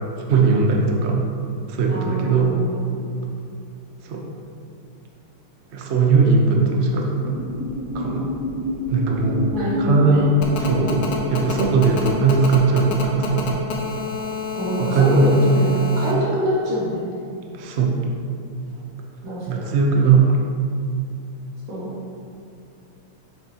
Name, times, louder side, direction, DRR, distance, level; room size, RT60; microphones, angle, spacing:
voice 1, 0.3-1.2 1.7-2.6 4.0-4.2 5.7-7.3 7.9-8.3 8.9-9.5 9.8-10.3 10.5-13.4 14.8-15.5 17.5-18.0 19.5-20.4, right 4 dB, 65° right, 0 dB, 0.6 m, -19 dB
voice 2, 1.9-3.0 9.5-10.2 14.6-17.2 19.2-19.7 21.7-21.9, equal, 90° right, -7 dB, 2.9 m, -26 dB
sound 1, 7.1-12.2, left 1 dB, 20° right, 0.9 m, -29 dB
Telephone, 10.4-16.1, left 5 dB, 90° left, 1.9 m, -28 dB
8.2 x 7.1 x 2.9 m, 2.4 s
omnidirectional pair, 2.4 m